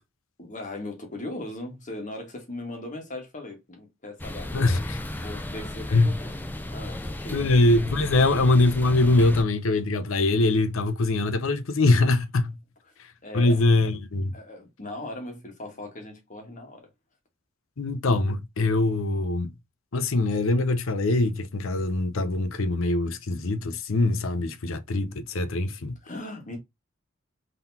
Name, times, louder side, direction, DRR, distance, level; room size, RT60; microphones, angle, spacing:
voice 1, 0.4-4.8 5.1-6.3 6.7-7.5 13.2-13.7 14.3-16.9 26.0-26.6, left 2 dB, 35° left, 1.6 m, -38 dB
sound 1, 4.2-9.4, left 1 dB, 10° left, 0.5 m, -34 dB
voice 2, 4.5-5.0 5.9-6.2 7.3-12.6 13.0-14.3 17.8-19.5 19.9-26.0, left 2 dB, 70° left, 0.6 m, -23 dB
3.8 x 3.8 x 2.7 m
head